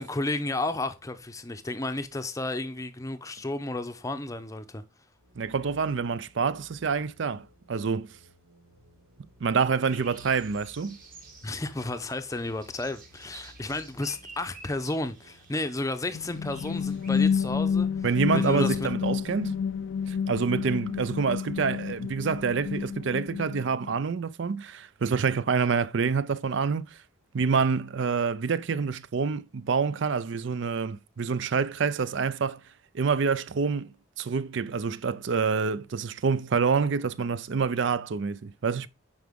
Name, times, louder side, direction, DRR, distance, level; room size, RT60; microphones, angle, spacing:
voice 1, 0.0-4.8 11.4-17.9 18.3-18.9, left 2 dB, 15° left, 0.6 m, -32 dB
sound 1, 5.2-22.6, left 2 dB, 80° right, 1.3 m, -58 dB
voice 2, 5.4-8.1 9.4-11.0 18.0-19.6 20.1-26.8 27.3-32.6 32.9-38.9, right 5 dB, 60° right, 0.4 m, -27 dB
sound 2, 9.8-17.4, right 4 dB, 40° right, 2.1 m, -51 dB
sound 3, 16.1-23.9, left 6 dB, 60° left, 0.3 m, -29 dB
9.6 x 4.8 x 3.6 m
head